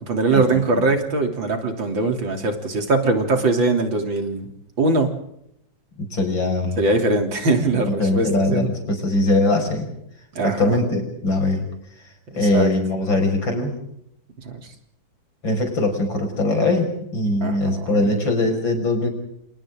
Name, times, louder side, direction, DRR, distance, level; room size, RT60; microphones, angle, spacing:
voice 1, 0.1-4.5 4.8-5.1 6.8-8.7 10.4-10.8 12.3-12.7 14.4-14.6 17.4-18.1, right 3 dB, 85° right, 4 dB, 4.0 m, -21 dB
voice 2, 6.0-6.8 7.7-9.8 10.4-11.6 12.4-13.7 15.4-19.1, left 2 dB, 85° left, 4 dB, 6.7 m, -21 dB
29.0 x 28.0 x 3.8 m, 0.77 s
omnidirectional pair, 2.0 m